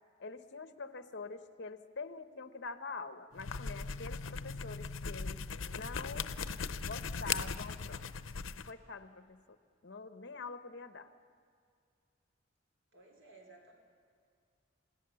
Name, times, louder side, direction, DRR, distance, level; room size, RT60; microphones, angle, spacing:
voice 1, 0.2-6.3 6.8-8.0 8.7-9.6 9.8-11.1, left 3 dB, 60° left, 10 dB, 1.0 m, -45 dB
sound 1, 3.3-8.7, left 5 dB, 90° left, 0.7 m, -39 dB
voice 2, 12.9-13.7, right 2 dB, 85° right, 1 dB, 3.3 m, -57 dB
28.5 x 17.0 x 6.9 m, 2.3 s
head